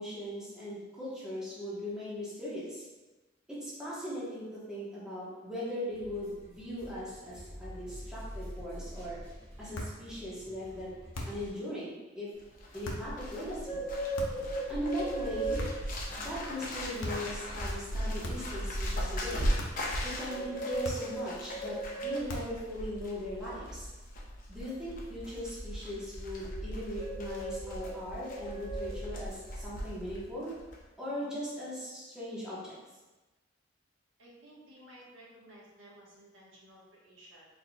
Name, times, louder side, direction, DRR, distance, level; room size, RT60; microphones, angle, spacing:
voice 1, 0.0-2.8 3.5-9.2 9.6-10.9 11.3-12.3 12.7-13.8 14.7-15.6 16.2-19.5 20.0-23.9 24.5-30.5 31.0-32.8, equal, 5° right, -10 dB, 1.1 m, -39 dB
sound 1, 5.9-11.5, equal, 30° right, 1.3 m, -47 dB
sound 2, 9.7-10.0 11.1-11.5 12.8-13.1 14.1-14.5 15.6-16.0 17.0-17.3 18.2-18.6 19.6-19.9 20.8-21.2 22.3-22.6, left 1 dB, 85° left, 0.7 m, -39 dB
Bird, 12.4-30.2 30.5-30.8, equal, 45° left, 0.7 m, -36 dB
voice 2, 34.2-37.4, right 1 dB, 75° right, -5 dB, 1.2 m, -55 dB
4.3 x 3.7 x 2.2 m, 1.2 s
head